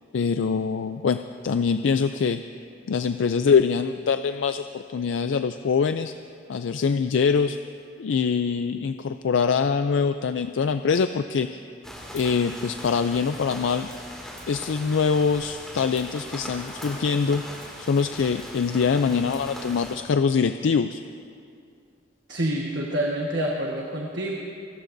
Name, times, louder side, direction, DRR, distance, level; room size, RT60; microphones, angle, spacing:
voice 1, 0.1-1.2 1.4-2.4 2.9-6.1 6.5-7.6 8.0-11.7 12.1-13.9 14.5-17.4 17.8-21.0, left 5 dB, 75° left, 10 dB, 0.4 m, -24 dB
sound 1, 11.8-20.0, equal, 5° left, 2.3 m, -40 dB
voice 2, 22.3-24.3, right 1 dB, 65° right, -1 dB, 1.3 m, -27 dB
28.5 x 15.0 x 2.6 m, 2.3 s
head